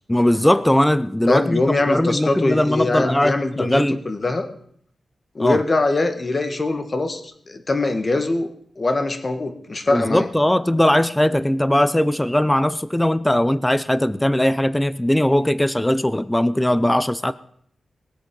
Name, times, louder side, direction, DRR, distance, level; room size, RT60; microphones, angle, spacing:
voice 1, 0.1-4.0 5.4-5.6 9.9-17.3, left 1 dB, 10° left, 16 dB, 0.4 m, -19 dB
voice 2, 1.3-4.5 5.3-7.2 7.5-8.5 8.8-10.3, left 2 dB, 35° left, 7 dB, 1.5 m, -22 dB
20.5 x 8.0 x 5.2 m, 0.65 s
wide cardioid pair, 115°, 0 cm